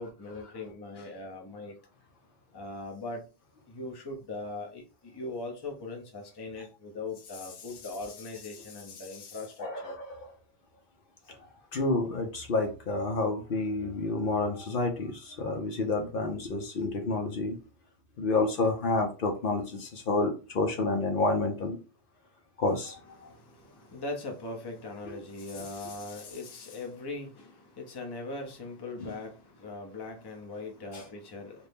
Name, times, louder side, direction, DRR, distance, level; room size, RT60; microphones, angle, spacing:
voice 1, 0.0-1.8 2.5-3.3 3.7-9.9 23.2-31.7, left 2 dB, 25° left, 0.6 m, -40 dB
voice 2, 9.6-10.3 11.3-17.6 18.2-21.8 22.6-23.3 29.0-29.1 30.9-31.0, left 3 dB, 60° left, 0.8 m, -29 dB
2.7 x 2.5 x 3.4 m
omnidirectional pair, 1.1 m